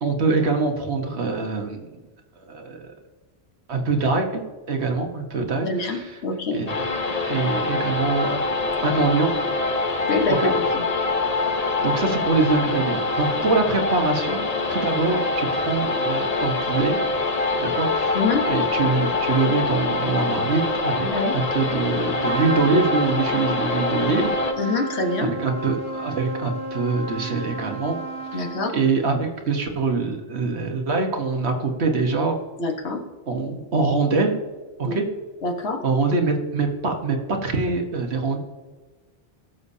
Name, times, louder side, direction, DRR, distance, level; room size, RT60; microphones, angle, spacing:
voice 1, 0.0-2.0 2.4-2.9 3.7-6.2 6.5-8.4 8.8-9.3 10.3-10.5 11.3-14.4 14.7-17.0 17.6-18.2 18.4-21.1 21.3-24.3 25.2-28.0 28.3-28.4 28.7-32.4 33.3-34.4 34.8-35.1 35.8-38.4, right 4 dB, 75° right, 3 dB, 1.5 m, -24 dB
voice 2, 5.7-6.6 10.1-10.5 10.7-10.8 18.1-18.4 21.0-21.4 23.4-23.5 24.6-25.3 28.3-28.7 32.6-33.0 34.8-35.0 35.4-35.8, left 3 dB, 75° left, 3 dB, 1.5 m, -25 dB
sound 1, 6.7-24.5, left 3 dB, 40° left, 0.9 m, -24 dB
Trumpet, 22.2-29.1, right 2 dB, 5° left, 1.7 m, -32 dB
17.5 x 6.9 x 2.7 m, 1.3 s
omnidirectional pair, 1.1 m